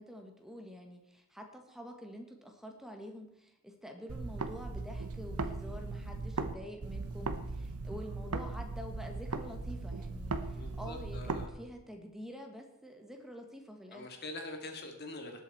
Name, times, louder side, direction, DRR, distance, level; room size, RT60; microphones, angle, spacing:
voice 1, 0.0-14.1, equal, ahead, 3 dB, 1.6 m, -47 dB
sound 1, 4.1-6.5 6.8-11.5, right 3 dB, 85° right, 1.0 m, -38 dB
voice 2, 10.5-11.5 13.9-15.4, left 2 dB, 45° left, 4 dB, 2.2 m, -44 dB
19.0 x 8.2 x 4.3 m, 0.80 s
head